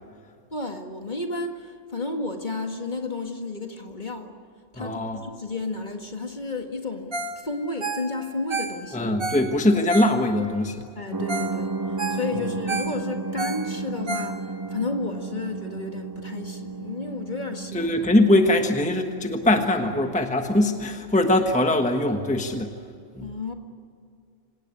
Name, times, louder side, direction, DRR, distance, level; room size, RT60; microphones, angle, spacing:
voice 1, 0.5-4.4 4.7-9.1 11.0-17.9 23.2-23.5, left 3 dB, 35° left, 2.0 m, -32 dB
voice 2, 4.8-5.2 8.9-10.8 17.7-22.7 23.1-23.3, left 1 dB, 5° left, 1.2 m, -22 dB
Ringtone, 7.1-7.4 7.7-10.5 11.0-11.1 11.3-11.6 11.8-14.7 15.2-15.3, right 3 dB, 45° right, 2.3 m, -31 dB
sound 1, 11.1-20.1, right 3 dB, 30° right, 0.4 m, -33 dB
26.5 x 18.0 x 9.8 m
omnidirectional pair, 1.3 m